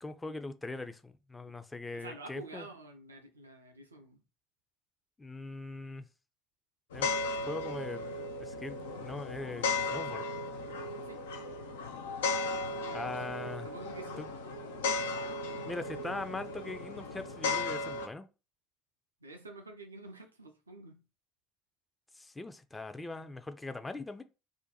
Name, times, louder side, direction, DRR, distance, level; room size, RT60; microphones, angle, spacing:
voice 1, 0.0-2.7 5.2-6.1 6.9-7.1 7.5-8.0 8.4-9.6 9.9-10.2 12.9-13.7 14.2-14.3 15.6-18.3 22.2-24.2, left 2 dB, 15° left, 0.4 m, -41 dB
voice 2, 1.9-4.2 11.0-11.2 12.7-13.1 13.6-14.3 15.4-15.7 19.2-21.0, right 2 dB, 90° right, 0.4 m, -49 dB
sound 1, 6.9-18.1, left 3 dB, 75° left, 0.4 m, -36 dB
2.5 x 2.2 x 4.0 m
figure-of-eight pair, 60°, 0 cm